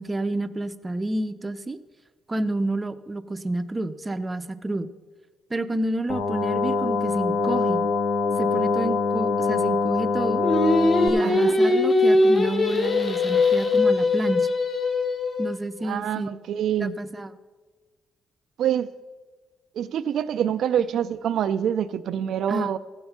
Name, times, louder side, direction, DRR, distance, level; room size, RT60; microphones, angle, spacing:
voice 1, 0.0-1.8 2.3-4.9 5.5-7.8 8.4-10.4 11.0-14.5 15.4-16.3 16.8-17.3 22.5-22.7, right 1 dB, 20° right, 0.5 m, -29 dB
sound 1, 6.1-11.1, left 4 dB, 65° left, 1.0 m, -24 dB
Singing, 10.4-15.6, left 2 dB, 45° left, 1.9 m, -21 dB
voice 2, 11.2-11.6 15.8-17.0 18.6-18.9 19.7-22.8, right 9 dB, 70° right, 0.3 m, -26 dB
15.0 x 5.5 x 5.8 m
cardioid pair, 90°, 0 cm